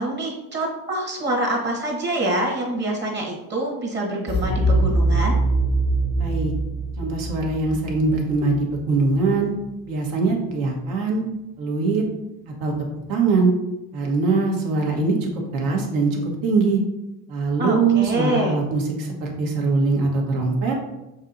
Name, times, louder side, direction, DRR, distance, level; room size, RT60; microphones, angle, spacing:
voice 1, 0.0-5.4 17.6-18.6, right 1 dB, 30° right, -1 dB, 1.0 m, -25 dB
sound 1, 4.3-9.1, right 2 dB, 30° left, 0.4 m, -23 dB
voice 2, 6.1-6.5 7.0-9.5 9.9-11.2 11.6-12.0 12.6-12.7 13.1-13.5 13.9-16.8 17.3-20.8, right 3 dB, 80° right, 0 dB, 1.2 m, -22 dB
6.3 x 2.8 x 2.6 m, 0.97 s
cardioid pair, 120°, 34 cm